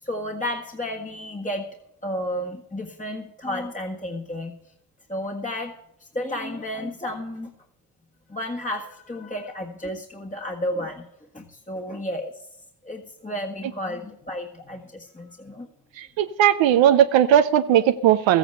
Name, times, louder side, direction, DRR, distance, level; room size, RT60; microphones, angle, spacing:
voice 1, 0.0-1.8 2.0-4.5 5.1-7.5 8.3-11.1 11.3-12.5 12.8-15.7, left 1 dB, 15° left, 0 dB, 1.7 m, -32 dB
voice 2, 16.0-18.4, right 10 dB, 90° right, 9 dB, 0.7 m, -18 dB
14.0 x 9.1 x 6.6 m, 0.79 s
supercardioid pair, 55°, 44 cm